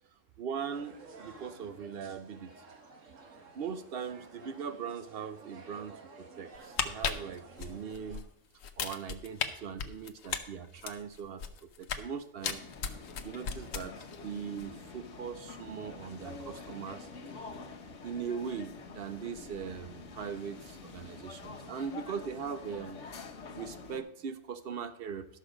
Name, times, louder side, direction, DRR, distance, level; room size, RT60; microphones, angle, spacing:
voice 1, 0.4-2.5 3.5-8.3 8.8-12.7 13.2-17.1 17.3-17.5 18.0-23.0 23.6-25.4, right 6 dB, 55° right, 11 dB, 0.8 m, -40 dB
sound 1, 0.7-8.2, right 3 dB, 75° right, 1.5 m, -53 dB
sound 2, 6.5-8.2 8.6-9.5 9.8-12.1 12.4-14.2 14.5-14.7, left 7 dB, 85° left, 1.2 m, -35 dB
sound 3, 12.4-24.0, left 4 dB, 70° left, 1.4 m, -47 dB
11.5 x 6.5 x 5.0 m, 0.73 s
omnidirectional pair, 1.3 m